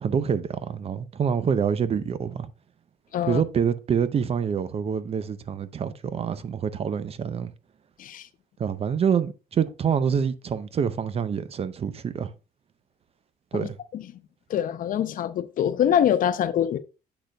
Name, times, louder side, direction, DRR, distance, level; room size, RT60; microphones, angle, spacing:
voice 1, 0.0-2.5 3.3-7.5 8.6-12.3 13.5-13.8, right 7 dB, 35° right, 0.5 m, -26 dB
voice 2, 13.5-14.1 14.5-16.8, left 9 dB, 55° left, 0.6 m, -24 dB
8.0 x 6.4 x 2.2 m
cardioid pair, 110°, 17 cm